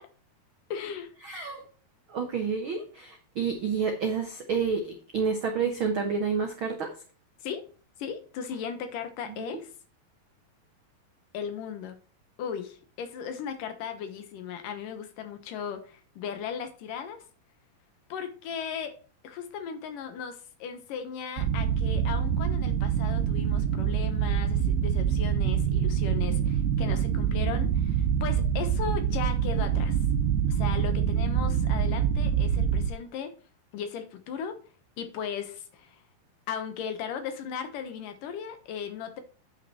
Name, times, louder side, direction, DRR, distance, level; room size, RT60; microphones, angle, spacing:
voice 1, 0.7-1.1 7.4-7.6 8.0-9.7 11.3-12.0 12.4-17.2 18.1-19.0 19.2-30.0 30.5-33.3 33.7-34.6 35.0-36.0 36.5-39.2, left 7 dB, 70° left, 9 dB, 2.5 m, -37 dB
voice 2, 1.2-1.6 2.1-6.9 9.4-9.6, right 5 dB, 70° right, 4 dB, 1.2 m, -29 dB
sound 1, 21.4-32.9, right 8 dB, 90° right, 2.7 m, -26 dB
9.8 x 6.0 x 4.2 m, 0.39 s
omnidirectional pair, 4.2 m